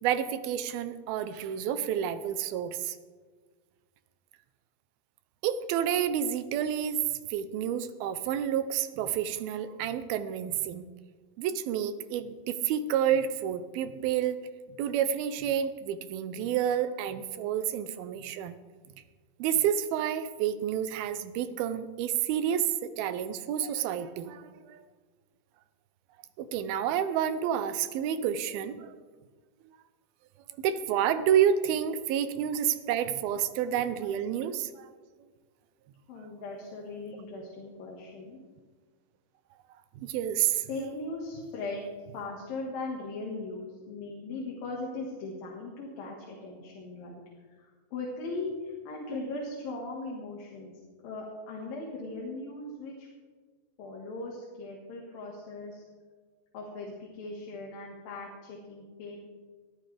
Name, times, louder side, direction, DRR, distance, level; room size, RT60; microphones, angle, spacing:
voice 1, 0.0-3.0 5.4-10.9 11.4-14.4 14.8-18.6 19.4-24.8 26.4-29.0 30.5-34.9 40.0-40.7, right 9 dB, 85° right, 12 dB, 2.6 m, -29 dB
voice 2, 36.1-38.4 40.7-41.9 42.1-47.2 47.9-50.7 51.0-53.1 53.8-55.8 56.5-59.2, left 2 dB, 70° left, -2 dB, 3.5 m, -39 dB
21.0 x 13.5 x 3.4 m, 1.5 s
omnidirectional pair, 4.2 m